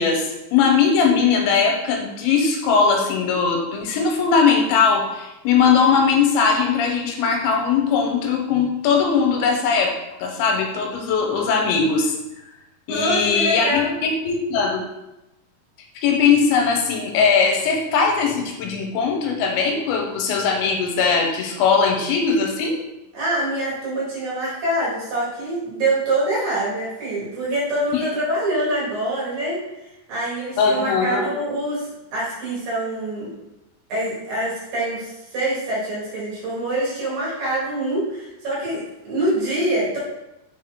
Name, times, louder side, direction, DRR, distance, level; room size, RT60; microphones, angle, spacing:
voice 1, 0.0-9.9 10.2-12.1 12.9-14.8 16.0-22.8 27.9-28.0 30.6-31.3, left 5 dB, 80° left, 2 dB, 3.0 m, -20 dB
voice 2, 12.9-14.0 23.1-29.6 30.1-33.3 33.9-38.8 39.0-40.0, right 1 dB, 60° right, -7 dB, 3.1 m, -25 dB
6.6 x 4.2 x 3.6 m, 0.94 s
omnidirectional pair, 5.3 m